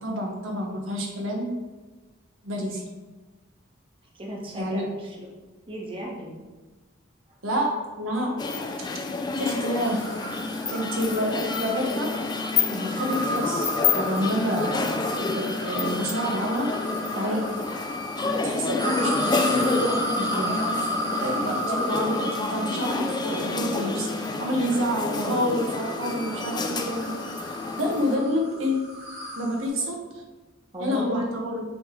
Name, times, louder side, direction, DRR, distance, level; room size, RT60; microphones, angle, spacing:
voice 1, 0.0-1.5 2.4-2.8 4.6-4.8 7.4-7.7 8.0-8.6 9.4-10.0 10.7-12.1 12.7-16.7 17.1-17.4 18.2-20.5 21.2-27.1 27.7-28.8 29.4-30.0 30.8-31.6, equal, 85° right, 0 dB, 1.2 m, -28 dB
voice 2, 4.1-5.3 5.7-6.3 30.7-31.3, equal, 25° right, -2 dB, 1.2 m, -35 dB
sound 1, 8.4-28.2, left 3 dB, 20° left, 0.4 m, -29 dB
sound 2, 9.8-18.4 18.8-29.7, equal, 65° right, 2.0 m, -34 dB
8.7 x 3.3 x 3.8 m, 1.2 s
head